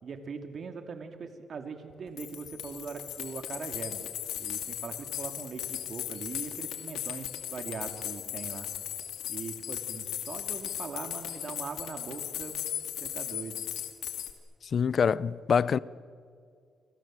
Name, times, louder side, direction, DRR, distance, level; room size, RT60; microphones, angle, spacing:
voice 1, 0.0-4.1 4.4-8.7 9.3-12.6 13.0-13.7, right 5 dB, 55° right, 2.5 m, -41 dB
sound 1, 1.9-14.3, left 11 dB, 90° left, 2.4 m, -37 dB
voice 2, 14.7-15.8, left 6 dB, 55° left, 0.7 m, -25 dB
30.0 x 25.0 x 7.6 m
cardioid pair, 80°, 0 cm